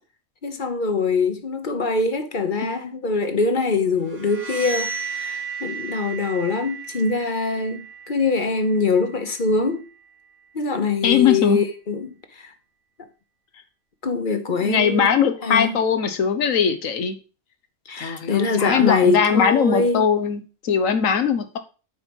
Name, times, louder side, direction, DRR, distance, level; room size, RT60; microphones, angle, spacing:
voice 1, 0.4-9.9 10.5-12.5 14.0-15.1 15.4-15.8 17.9-20.0, left 4 dB, 40° left, 1.0 m, -23 dB
sound 1, 4.0-9.7, right 5 dB, 45° right, 1.6 m, -34 dB
voice 2, 11.0-11.6 14.6-17.2 18.0-21.6, left 7 dB, 85° left, 1.4 m, -20 dB
8.8 x 4.5 x 5.3 m
omnidirectional pair, 1.3 m